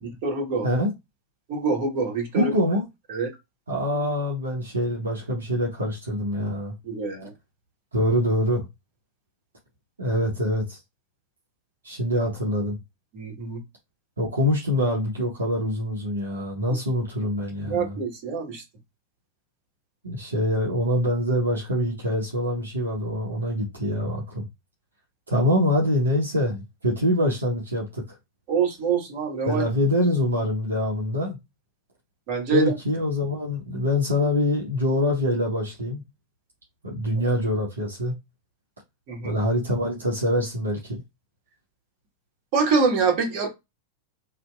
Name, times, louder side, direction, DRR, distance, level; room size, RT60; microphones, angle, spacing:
voice 1, 0.0-0.7 1.5-2.5 3.1-3.3 6.8-7.3 13.1-13.6 17.7-18.6 28.5-29.6 32.3-32.7 39.1-39.3 42.5-43.5, right 4 dB, 45° right, 1.0 m, -25 dB
voice 2, 2.3-2.8 3.7-6.7 7.9-8.6 10.0-10.8 11.8-12.8 14.2-17.9 20.0-24.5 25.3-28.0 29.5-31.4 32.5-36.0 36.8-38.1 39.2-41.0, left 1 dB, 75° right, 0.8 m, -25 dB
2.7 x 2.1 x 2.3 m
figure-of-eight pair, 90°, 0 cm